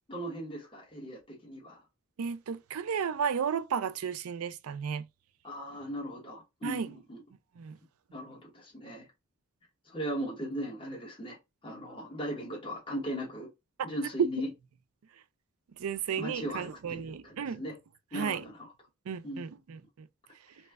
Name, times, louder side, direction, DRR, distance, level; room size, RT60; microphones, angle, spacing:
voice 1, 0.1-1.8 5.4-7.2 8.1-9.1 9.9-11.4 11.6-13.5 13.8-14.5 16.2-17.8 18.1-18.7 19.2-19.4, equal, 25° left, 1.1 m, -38 dB
voice 2, 2.2-5.1 6.6-6.9 7.6-7.8 15.8-17.6 18.1-18.4 19.1-20.1, right 7 dB, 80° right, 0.4 m, -34 dB
3.0 x 2.2 x 3.4 m
head